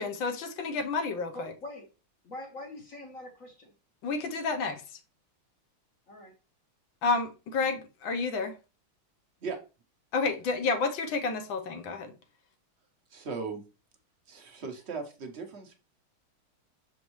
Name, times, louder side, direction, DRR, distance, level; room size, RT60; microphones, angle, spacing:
voice 1, 0.0-1.5 4.0-4.8 7.0-8.5 10.1-12.1, left 4 dB, 70° left, 1.6 m, -30 dB
voice 2, 1.3-1.9 2.2-3.7 6.1-6.3, left 1 dB, 50° left, 1.2 m, -43 dB
voice 3, 13.1-13.6 14.3-15.8, right 4 dB, 45° right, 0.8 m, -37 dB
6.3 x 5.2 x 3.1 m
omnidirectional pair, 2.2 m